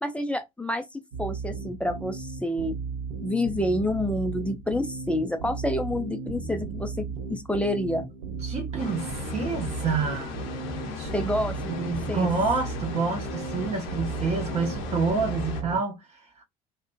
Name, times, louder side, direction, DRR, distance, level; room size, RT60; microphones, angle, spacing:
voice 1, 0.0-2.8 3.2-8.1 11.1-12.3, left 1 dB, 5° left, 0.4 m, -28 dB
sound 1, 1.1-15.8, right 5 dB, 70° right, 0.7 m, -35 dB
voice 2, 8.4-10.3 10.8-11.3 11.8-16.4, right 4 dB, 35° right, 0.8 m, -28 dB
sound 2, 8.8-15.6, left 7 dB, 60° left, 0.7 m, -37 dB
2.6 x 2.1 x 2.4 m
figure-of-eight pair, 60°, 20 cm